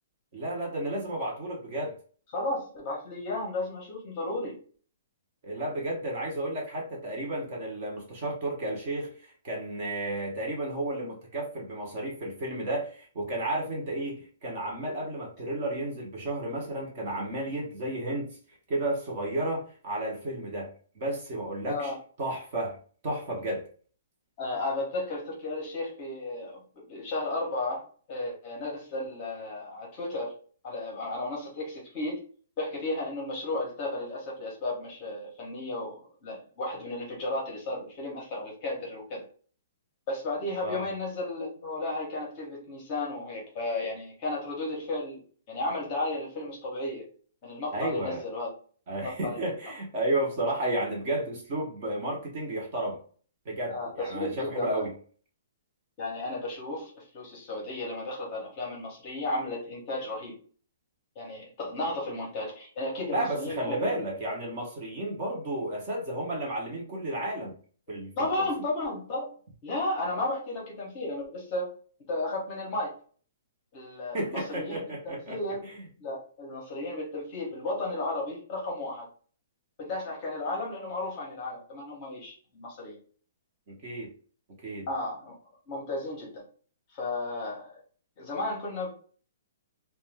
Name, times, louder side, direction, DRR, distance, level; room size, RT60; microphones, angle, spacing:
voice 1, 0.3-1.9 5.4-18.4 18.7-21.9 22.2-22.8 23.0-23.6 40.6-40.9 47.7-48.2 48.9-53.0 53.4-54.9 63.1-67.6 67.9-68.1 68.4-68.5 74.1-75.8 83.7-84.1 84.6-84.9, right 1 dB, 30° right, 0.8 m, -32 dB
voice 2, 2.3-4.6 21.6-22.0 24.4-26.6 26.9-30.3 30.6-32.2 32.6-39.2 40.1-45.2 45.5-47.1 47.4-48.5 49.0-49.4 53.7-54.8 56.0-60.4 61.1-64.0 68.2-69.3 69.6-71.7 72.1-72.9 73.7-75.6 76.0-79.1 79.8-83.0 84.9-85.3 85.7-86.4 86.9-87.8 88.2-88.9, left 2 dB, 20° left, 0.8 m, -34 dB
2.5 x 2.2 x 3.2 m
hypercardioid pair, 180°, 0 cm